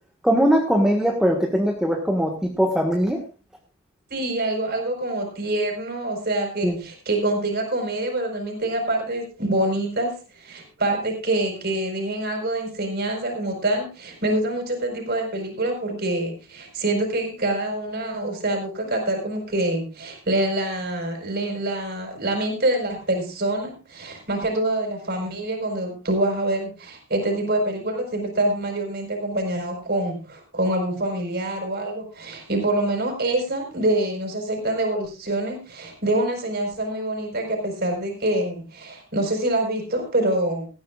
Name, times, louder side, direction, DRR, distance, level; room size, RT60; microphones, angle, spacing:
voice 1, 0.2-3.2 6.6-6.8, equal, 5° right, 1 dB, 1.5 m, -20 dB
voice 2, 4.1-40.7, right 1 dB, 45° right, 4 dB, 4.7 m, -25 dB
18.0 x 14.5 x 2.4 m, 0.33 s
head